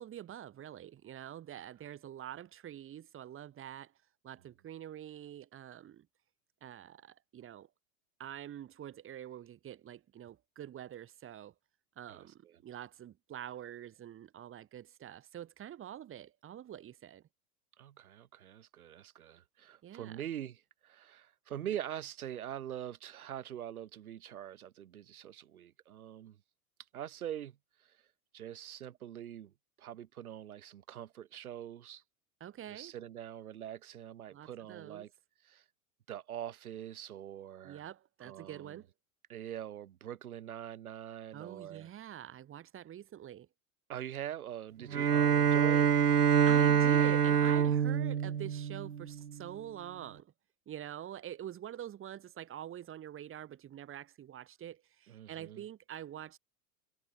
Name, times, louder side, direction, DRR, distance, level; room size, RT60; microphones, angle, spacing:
voice 1, 0.0-3.9 4.2-6.1 6.6-7.7 8.2-11.5 12.0-17.2 19.8-20.2 32.4-32.9 34.3-35.1 37.6-38.9 41.3-43.5 46.5-50.3 50.7-56.4, right 11 dB, 30° right, 3.0 m, -46 dB
voice 2, 12.1-12.6 17.8-20.6 20.8-26.4 26.9-27.6 28.3-29.5 29.8-32.0 32.7-35.1 35.4-35.6 36.1-37.8 38.2-38.8 39.3-41.9 43.9-45.9 55.1-55.6, right 11 dB, 70° right, 7.8 m, -44 dB
Bowed string instrument, 44.9-49.3, right 8 dB, 85° right, 1.0 m, -26 dB
figure-of-eight pair, 95°, 45 cm